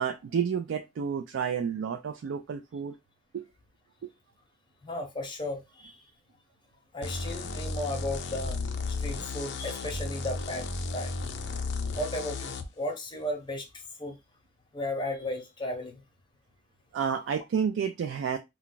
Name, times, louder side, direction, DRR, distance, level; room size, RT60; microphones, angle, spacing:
voice 1, 0.0-2.9 3.3-3.5 4.0-4.1 16.9-18.4, right 7 dB, 70° right, 0.3 m, -30 dB
voice 2, 4.8-6.0 6.9-8.6 8.9-11.1 11.9-14.2 14.7-16.0 17.0-17.2, left 1 dB, 25° left, 0.7 m, -35 dB
sound 1, 7.0-12.7, left 3 dB, 60° left, 0.4 m, -34 dB
2.2 x 2.2 x 3.8 m
head